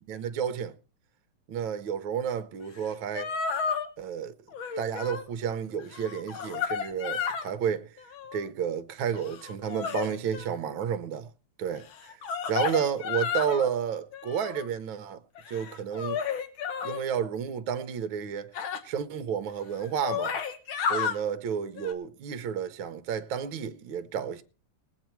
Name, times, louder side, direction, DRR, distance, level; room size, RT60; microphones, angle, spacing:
voice 1, 0.1-0.7 1.5-3.3 4.0-4.3 4.8-8.0 8.3-11.3 11.6-12.2 12.5-15.2 15.5-16.2 16.8-18.5 18.8-20.4 20.9-24.4, right 8 dB, 70° right, 1.6 m, -31 dB
sound 1, 2.8-2.9 3.2-3.9 4.5-5.3 5.8-7.5 8.0-8.5 9.1-10.5 11.9-13.7 14.1-14.7 15.4-17.0 18.6-18.8 19.5-19.6 19.8-21.2 21.8-21.9, left 6 dB, 70° left, 2.0 m, -32 dB
19.5 x 8.6 x 4.5 m
omnidirectional pair, 2.4 m